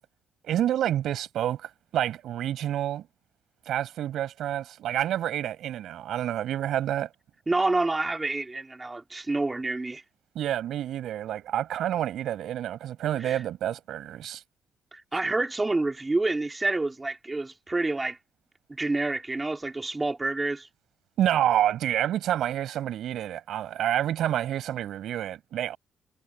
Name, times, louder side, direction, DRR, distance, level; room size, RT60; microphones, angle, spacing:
voice 1, 0.4-3.0 3.7-7.1 10.3-14.4 21.2-25.8, right 11 dB, 75° right, 5.9 m, -28 dB
voice 2, 7.5-10.0 13.2-13.4 14.9-18.2 18.7-20.7, right 2 dB, 20° right, 2.9 m, -28 dB
cardioid pair, 90°, 0 cm